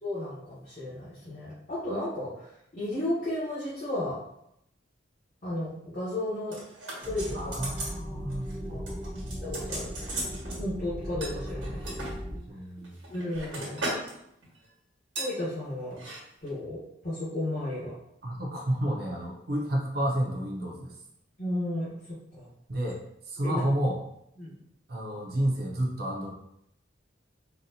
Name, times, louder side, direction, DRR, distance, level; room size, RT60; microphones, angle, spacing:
voice 1, 0.0-4.2 5.4-6.6 6.9-7.7 9.4-9.9 10.6-11.8 13.1-13.8 15.2-16.0 16.4-18.0 21.4-22.4 23.4-23.6 24.4-24.5, left 1 dB, 40° left, -11 dB, 1.1 m, -33 dB
sound 1, 6.5-8.0 8.3-8.6 8.9-10.6 11.2-12.1 12.8-14.1 14.4-14.6 15.2-15.3 15.9-16.2 16.5-16.6, right 2 dB, 90° right, 1.2 m, -37 dB
sound 2, 7.0-12.4, equal, 15° right, 0.4 m, -37 dB
voice 2, 7.3-9.1 12.5-13.1 18.2-20.9 22.7-23.0 23.3-24.0 24.9-26.3, right 1 dB, 50° right, -1 dB, 0.6 m, -30 dB
4.0 x 2.3 x 2.7 m, 0.77 s
head